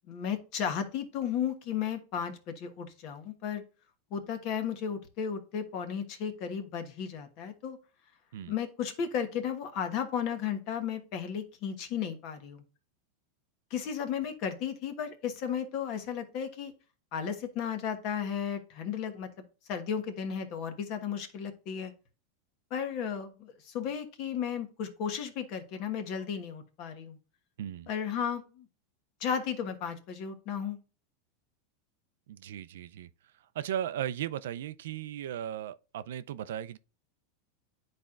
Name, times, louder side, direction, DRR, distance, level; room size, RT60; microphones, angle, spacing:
voice 1, 0.1-3.6 4.1-7.8 8.5-12.6 13.7-16.7 17.1-19.3 19.7-21.9 22.7-27.2 27.9-28.7 29.2-30.8, left 8 dB, 45° left, 1.2 m, -34 dB
voice 2, 27.6-27.9 32.3-33.1 33.5-36.8, right 10 dB, 85° right, 0.4 m, -36 dB
10.0 x 4.3 x 2.4 m
supercardioid pair, 155°, 0 cm